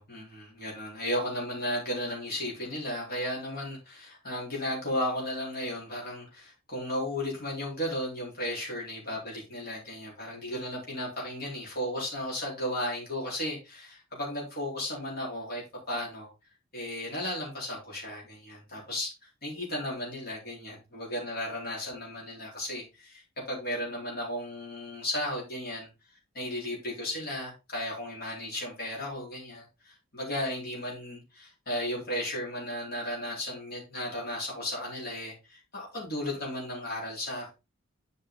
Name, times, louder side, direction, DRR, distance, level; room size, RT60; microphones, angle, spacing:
voice 1, 0.0-16.3 16.7-19.1 19.4-23.2 23.5-25.9 26.3-37.5, left 1 dB, 50° left, -3 dB, 4.0 m, -35 dB
7.9 x 5.5 x 3.8 m, 0.27 s
head